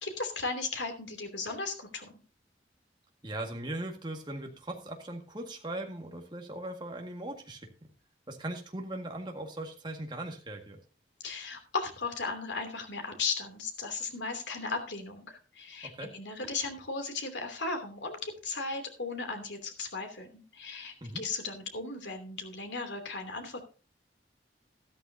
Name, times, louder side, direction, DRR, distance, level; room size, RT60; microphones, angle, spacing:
voice 1, 0.0-2.2 11.2-23.6, left 4 dB, 85° left, 5 dB, 2.9 m, -36 dB
voice 2, 3.2-7.7 8.3-10.8 15.8-16.1 21.0-21.2, right 1 dB, 25° right, 2 dB, 1.8 m, -39 dB
13.5 x 13.0 x 2.7 m, 0.35 s
head